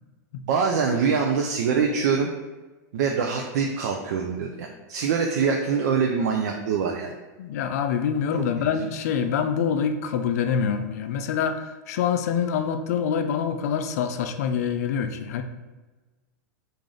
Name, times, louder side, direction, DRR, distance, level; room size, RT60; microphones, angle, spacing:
voice 1, 0.5-2.3 2.9-7.1 8.4-8.7, right 6 dB, 70° right, 2 dB, 0.4 m, -24 dB
voice 2, 7.4-15.4, left 7 dB, 60° left, 8 dB, 0.4 m, -25 dB
3.2 x 2.5 x 3.8 m, 1.2 s
supercardioid pair, 160°, 9 cm